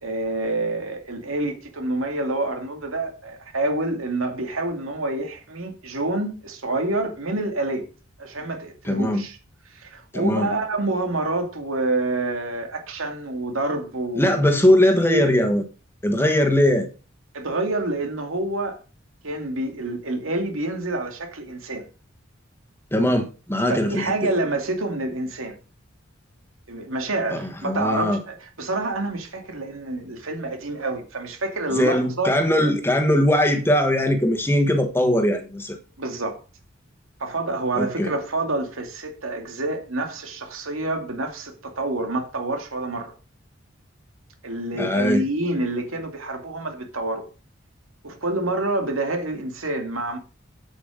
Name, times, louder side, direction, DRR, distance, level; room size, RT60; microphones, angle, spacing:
voice 1, 0.0-7.9 8.2-9.4 9.7-14.5 15.0-15.3 17.3-18.8 19.2-21.9 23.7-25.6 26.7-32.3 36.0-36.4 37.2-43.1 44.4-47.3 48.0-50.2, right 2 dB, 90° right, 2.4 m, -27 dB
voice 2, 8.8-9.2 10.1-10.5 14.2-15.6 16.0-16.9 22.9-24.3 27.3-28.2 31.7-35.8 37.7-38.1 44.8-45.2, left 1 dB, 10° left, 1.4 m, -20 dB
8.5 x 8.0 x 5.1 m
head